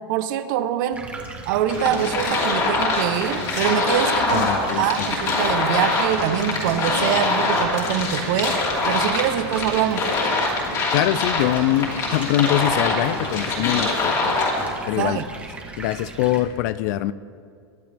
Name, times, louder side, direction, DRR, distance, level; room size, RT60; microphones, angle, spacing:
voice 1, 0.1-1.1 1.5-4.5 4.8-8.6 8.9-10.1 15.0-15.2, right 10 dB, 45° right, 10 dB, 0.9 m, -24 dB
Stream, 0.9-16.4, right 3 dB, 10° right, 1.4 m, -37 dB
sound 1, 1.7-14.7, left 3 dB, 25° left, 2.9 m, -24 dB
voice 2, 4.3-5.1 10.9-14.4 14.9-15.2 15.8-17.1, left 14 dB, 45° left, 17 dB, 0.4 m, -23 dB
24.0 x 11.0 x 3.4 m, 2.2 s
supercardioid pair, 165°, 14 cm